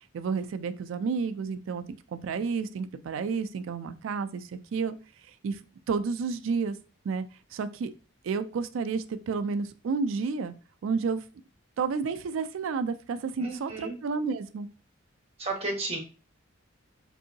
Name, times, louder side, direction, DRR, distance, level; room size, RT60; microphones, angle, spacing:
voice 1, 0.1-1.8 2.1-5.0 5.4-5.6 5.9-6.8 7.0-7.2 7.5-7.9 8.2-10.5 10.8-11.2 11.8-14.7, right 5 dB, 65° right, 11 dB, 0.3 m, -30 dB
voice 2, 13.4-14.0 15.4-16.0, right 2 dB, 30° right, 1 dB, 1.0 m, -33 dB
3.6 x 2.7 x 2.6 m, 0.33 s
head